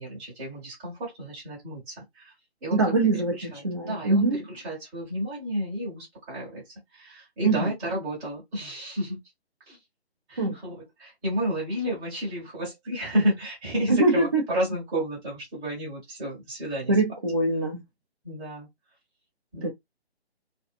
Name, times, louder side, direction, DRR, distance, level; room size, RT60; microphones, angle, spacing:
voice 1, 0.0-2.3 2.6-9.2 9.7-9.8 10.3-17.0 18.2-18.7 19.5-19.7, equal, 10° right, 0.9 m, -31 dB
voice 2, 2.7-3.3 3.6-4.4 7.4-7.6 10.4-10.6 13.9-14.4 16.9-17.8 19.6-19.7, right 3 dB, 25° right, 0.5 m, -23 dB
2.6 x 2.3 x 2.5 m
figure-of-eight pair, 145°, 33 cm